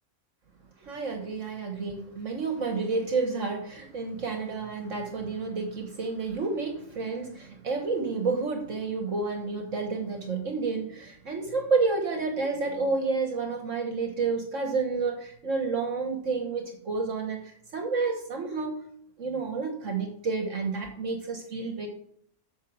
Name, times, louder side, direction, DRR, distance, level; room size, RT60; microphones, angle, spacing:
voice 1, 0.8-18.9 19.2-21.9, right 4 dB, 60° right, 4 dB, 1.6 m, -30 dB
8.3 x 6.6 x 6.1 m, 0.67 s
omnidirectional pair, 1.5 m